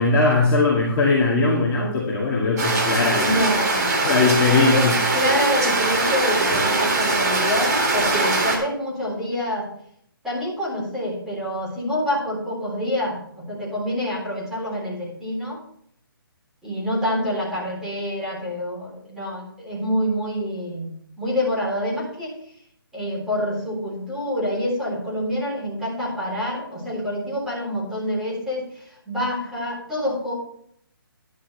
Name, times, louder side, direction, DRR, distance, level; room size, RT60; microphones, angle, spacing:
voice 1, 0.0-3.4 4.0-5.0, left 3 dB, 20° left, -6 dB, 2.4 m, -20 dB
sound 1, 2.6-8.6, right 2 dB, 45° right, 3.8 m, -21 dB
voice 2, 3.2-3.9 4.7-9.7 10.2-15.6 16.6-22.4 22.9-30.3, equal, 5° right, -6 dB, 3.9 m, -27 dB
12.5 x 11.0 x 3.4 m, 0.66 s
hypercardioid pair, 155°, 12 cm